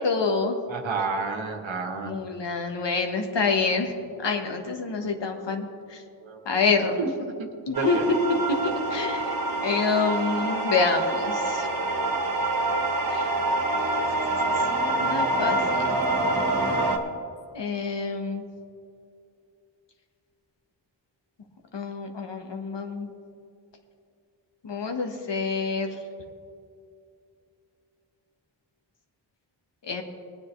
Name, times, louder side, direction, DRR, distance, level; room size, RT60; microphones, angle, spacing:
voice 1, 0.0-0.6 2.0-3.9 4.2-5.6 6.5-7.0 7.7-8.0 8.6-9.3 9.6-11.7 13.1-13.3 15.0-15.6 17.5-18.4 21.7-23.1 24.6-25.9 29.9-30.0, left 4 dB, 65° left, 4 dB, 1.4 m, -27 dB
voice 2, 0.7-2.2 5.0-5.1 6.2-6.4 7.0-8.1, right 4 dB, 75° right, 3 dB, 1.4 m, -31 dB
sound 1, 7.7-17.0, right 2 dB, 50° right, 1.5 m, -26 dB
19.5 x 9.6 x 3.2 m, 2.4 s
wide cardioid pair, 80°, 46 cm